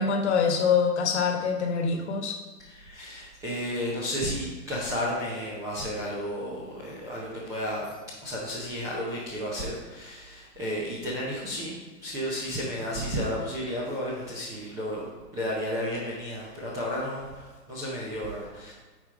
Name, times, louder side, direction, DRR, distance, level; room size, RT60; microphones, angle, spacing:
voice 1, 0.0-2.4, left 5 dB, 45° left, 5 dB, 1.3 m, -25 dB
voice 2, 2.6-7.9 8.2-11.8 12.0-15.0 15.3-17.4 17.7-18.7, equal, 5° right, -6 dB, 0.6 m, -32 dB
9.3 x 4.9 x 4.9 m, 1.3 s
hypercardioid pair, 145°, 48 cm